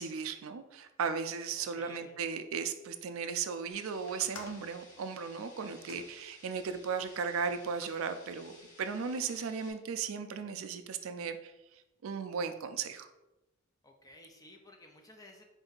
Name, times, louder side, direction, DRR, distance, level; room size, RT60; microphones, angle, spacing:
voice 1, 0.0-11.5 12.0-13.1, right 6 dB, 70° right, 9 dB, 0.4 m, -36 dB
voice 2, 1.5-2.2 13.8-15.4, left 1 dB, 15° left, 2 dB, 0.4 m, -55 dB
sound 1, 3.7-9.7, left 1 dB, 35° left, 1.0 m, -57 dB
sound 2, 4.1-6.8 7.5-8.0 8.8-9.4, left 4 dB, 70° left, 0.6 m, -54 dB
4.3 x 2.6 x 3.8 m, 0.97 s
head